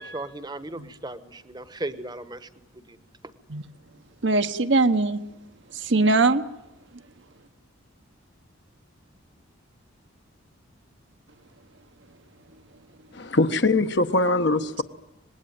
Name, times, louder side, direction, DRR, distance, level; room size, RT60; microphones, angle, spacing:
voice 1, 0.0-3.0, right 2 dB, 20° right, 1.1 m, -37 dB
voice 2, 4.2-5.2 5.9-6.4, right 3 dB, 60° right, 1.1 m, -20 dB
voice 3, 13.1-14.8, left 2 dB, 55° left, 1.1 m, -22 dB
25.5 x 20.5 x 9.3 m
head